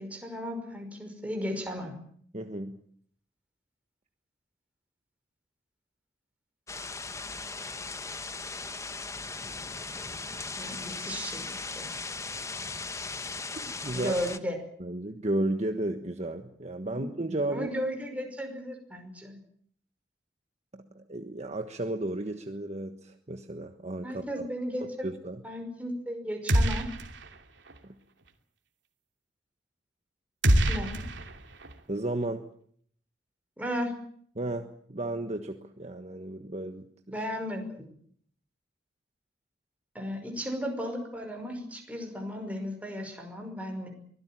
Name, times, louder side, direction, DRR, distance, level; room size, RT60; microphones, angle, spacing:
voice 1, 0.0-1.9 10.6-11.5 11.8-11.9 13.9-14.6 16.9-17.0 17.5-19.4 24.0-25.1 25.4-26.9 30.7-31.0 33.6-33.9 37.1-37.8 39.9-43.9, equal, 10° right, 3 dB, 5.6 m, -35 dB
voice 2, 2.3-2.8 13.5-14.1 14.8-17.7 20.7-24.4 25.0-25.4 27.8-28.0 31.9-32.4 34.3-37.2, right 1 dB, 40° right, 6 dB, 1.4 m, -33 dB
sound 1, 6.7-14.4, left 3 dB, 15° left, 0.9 m, -38 dB
sound 2, 26.5-27.4 27.7-27.8 30.4-31.7, right 1 dB, 80° right, 2.7 m, -25 dB
24.0 x 17.0 x 9.0 m, 0.63 s
head